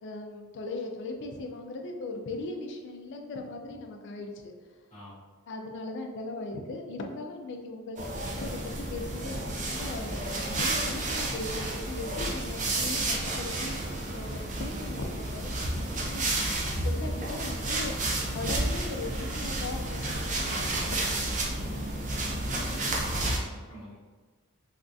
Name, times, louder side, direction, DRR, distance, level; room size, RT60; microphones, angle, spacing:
voice 1, 0.0-4.5 5.5-8.1 8.4-16.4 16.8-17.9 18.3-21.2, left 2 dB, 55° left, 3 dB, 0.4 m, -39 dB
sound 1, 8.0-23.4, right 2 dB, 35° right, 0.5 m, -31 dB
voice 2, 22.1-24.1, left 1 dB, 25° left, -13 dB, 0.9 m, -46 dB
3.5 x 2.4 x 2.5 m, 1.4 s
head